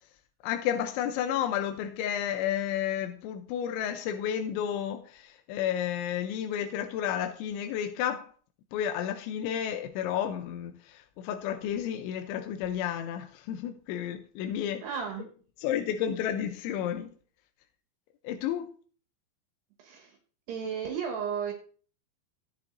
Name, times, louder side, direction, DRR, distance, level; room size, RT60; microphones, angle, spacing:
voice 1, 0.4-8.3 8.7-14.8 15.6-17.1 18.2-18.7, left 9 dB, 85° left, 3.1 m, -31 dB
voice 2, 14.8-15.2 19.8-20.2 20.5-21.5, right 7 dB, 70° right, 3.3 m, -33 dB
17.0 x 9.8 x 2.6 m
omnidirectional pair, 5.2 m